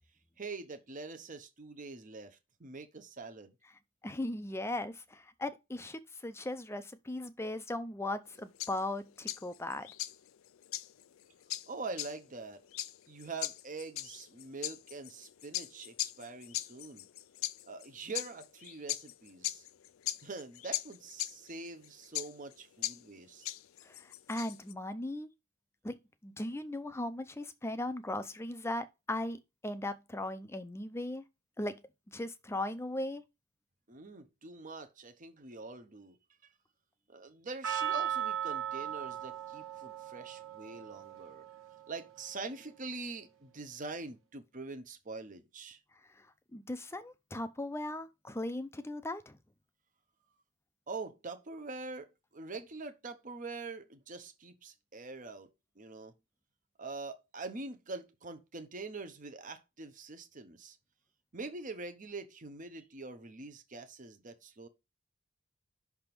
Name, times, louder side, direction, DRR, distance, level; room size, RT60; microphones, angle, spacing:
voice 1, 0.4-3.5 11.7-12.6 13.1-17.1 17.7-19.7 20.2-23.5 33.9-36.2 37.1-41.5 41.9-45.8 50.9-55.5 55.8-56.1 56.8-60.8 61.3-64.7, right 3 dB, 40° right, 0.8 m, -44 dB
voice 2, 4.0-9.9 23.8-25.3 25.8-31.2 31.6-31.8 32.1-33.2 46.2-46.3 46.5-49.4, left 1 dB, 15° left, 0.5 m, -38 dB
sound 1, 8.3-24.7, left 14 dB, 90° left, 0.4 m, -40 dB
Percussion, 37.6-42.1, right 9 dB, 80° right, 1.4 m, -38 dB
5.9 x 3.5 x 6.0 m
head